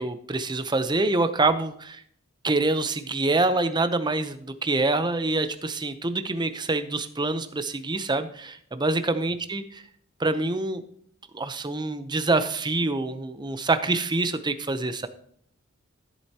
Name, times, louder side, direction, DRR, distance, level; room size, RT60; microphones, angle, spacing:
voice 1, 0.0-2.0 2.4-9.6 10.2-10.8 11.3-15.1, right 2 dB, 20° right, 10 dB, 0.8 m, -26 dB
14.0 x 7.9 x 2.9 m, 0.63 s
head